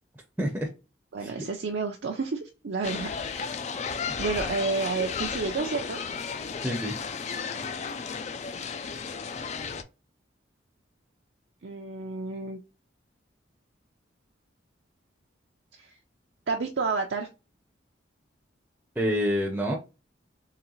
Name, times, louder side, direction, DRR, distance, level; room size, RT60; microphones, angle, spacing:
voice 1, 0.4-0.7 1.2-1.3 4.0-4.1 6.6-6.9 19.0-19.7, equal, 10° right, 0.6 m, -27 dB
voice 2, 1.1-3.5 4.2-6.0 11.6-12.6 15.8-16.0 16.5-17.3, right 4 dB, 65° right, 0.5 m, -30 dB
sound 1, 2.8-9.8, left 5 dB, 35° left, 0.4 m, -34 dB
3.8 x 3.1 x 3.1 m
head